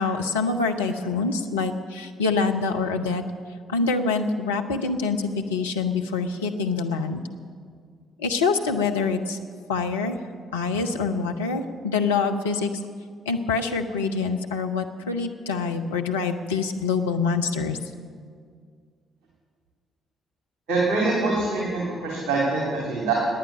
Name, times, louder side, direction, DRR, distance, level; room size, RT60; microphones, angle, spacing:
voice 1, 0.0-3.2 3.7-7.2 8.2-9.4 9.7-10.2 10.5-12.7 13.3-17.8, left 4 dB, 75° left, 3 dB, 0.8 m, -25 dB
voice 2, 20.7-23.1, right 3 dB, 60° right, -3 dB, 3.0 m, -24 dB
18.5 x 9.9 x 7.0 m, 2.1 s
figure-of-eight pair, 45°, 0 cm